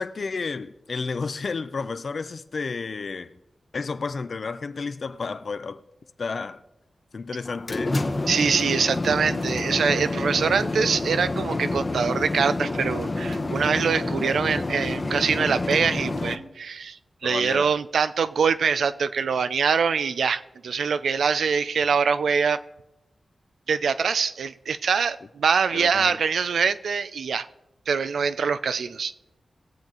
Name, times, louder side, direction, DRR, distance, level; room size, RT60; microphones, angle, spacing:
voice 1, 0.0-3.4 3.7-5.8 6.2-6.6 7.1-8.0 17.2-17.7 25.7-26.2, left 4 dB, 60° left, 0.6 m, -31 dB
sound 1, 7.4-16.4, left 2 dB, 40° left, 0.9 m, -28 dB
voice 2, 8.3-22.6 23.7-27.5 27.9-29.1, right 6 dB, 85° right, 0.4 m, -24 dB
19.0 x 7.3 x 3.9 m
cardioid pair, 60°, 0 cm